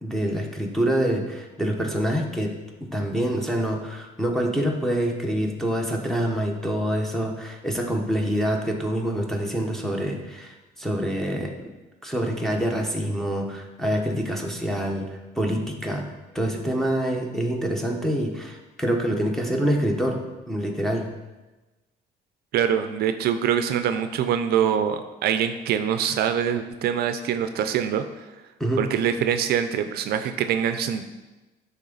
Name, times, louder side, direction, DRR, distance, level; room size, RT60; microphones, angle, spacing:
voice 1, 0.0-11.5 12.0-21.1 28.6-28.8, equal, ahead, 1 dB, 1.0 m, -26 dB
voice 2, 22.5-28.0 28.8-31.0, right 8 dB, 70° right, 9 dB, 0.5 m, -24 dB
10.0 x 3.5 x 3.9 m, 1.1 s
cardioid pair, 110°, 17 cm